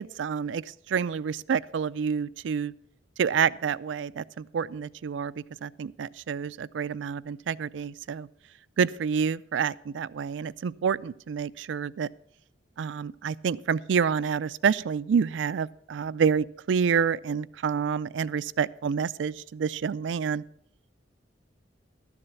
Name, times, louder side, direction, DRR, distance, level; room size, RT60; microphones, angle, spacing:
voice 1, 0.0-2.7 3.2-5.3 5.6-8.3 8.8-12.1 12.8-20.4, right 6 dB, 80° right, 19 dB, 0.4 m, -28 dB
12.5 x 7.2 x 6.8 m, 0.71 s
head